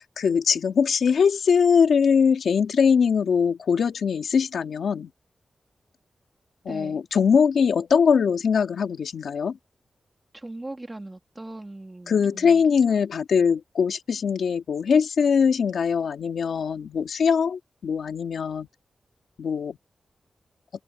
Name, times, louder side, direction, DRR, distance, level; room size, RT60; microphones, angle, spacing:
voice 1, 0.0-5.1 6.6-9.6 12.1-18.7 19.4-19.8, left 6 dB, 90° left, 2.3 m, -22 dB
voice 2, 6.7-7.0 10.3-12.6, right 2 dB, 15° right, 3.1 m, -39 dB
open air
wide cardioid pair, 150°, 0 cm